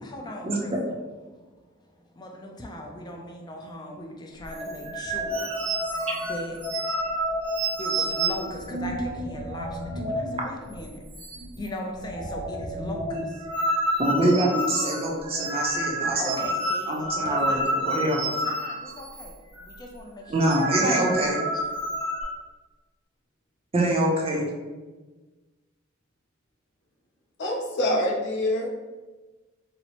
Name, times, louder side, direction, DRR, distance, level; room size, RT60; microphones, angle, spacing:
voice 1, 0.0-1.0 1.3-13.5 16.2-17.6 18.4-21.5, left 1 dB, 20° left, 0 dB, 0.4 m, -39 dB
sound 1, 4.4-10.4 10.7-10.8 11.1-11.7 12.0-19.3 19.6-19.8 20.2-22.2, right 1 dB, 70° right, 1.2 m, -29 dB
voice 2, 14.0-16.4 16.9-18.2 20.3-21.4 23.7-24.5, right 1 dB, 30° right, -1 dB, 0.6 m, -24 dB
voice 3, 27.4-28.7, left 1 dB, 60° left, -1 dB, 0.7 m, -25 dB
4.2 x 2.0 x 2.9 m, 1.3 s
head